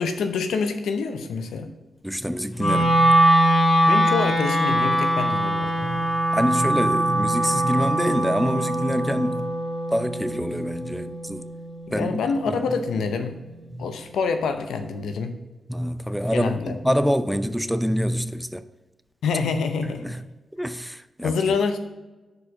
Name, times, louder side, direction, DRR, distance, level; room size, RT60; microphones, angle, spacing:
voice 1, 0.0-1.7 3.9-6.1 11.9-13.4 13.8-15.4 16.3-16.8 19.2-20.1 21.2-21.8, left 5 dB, 80° left, 0.6 m, -26 dB
voice 2, 2.0-3.2 5.8-9.5 9.9-11.5 11.9-12.2 12.5-12.6 13.7-13.9 15.7-18.6 19.8-20.2 20.6-21.4, equal, ahead, 0.5 m, -26 dB
Wind instrument woodwind instrument, 2.6-12.7, right 1 dB, 40° left, 2.4 m, -22 dB
6.4 x 4.8 x 4.9 m
supercardioid pair, 40°, 0 cm